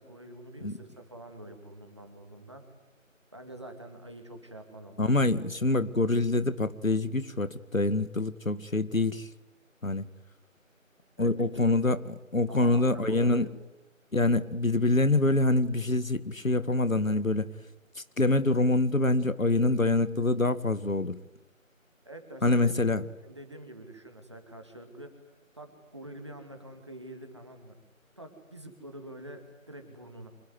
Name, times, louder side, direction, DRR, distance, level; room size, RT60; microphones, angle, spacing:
voice 1, 0.0-2.7 3.3-5.3 11.2-11.9 12.5-13.5 22.0-22.8 23.2-25.2 25.5-27.7 28.2-30.3, right 1 dB, 20° right, 5 dB, 2.5 m, -46 dB
voice 2, 5.0-9.3 9.8-10.0 11.2-12.0 12.3-13.5 14.1-17.5 18.2-21.2 22.4-23.0, left 2 dB, 75° left, 13 dB, 2.0 m, -25 dB
26.5 x 19.5 x 9.6 m, 0.94 s
figure-of-eight pair, 170°, 41 cm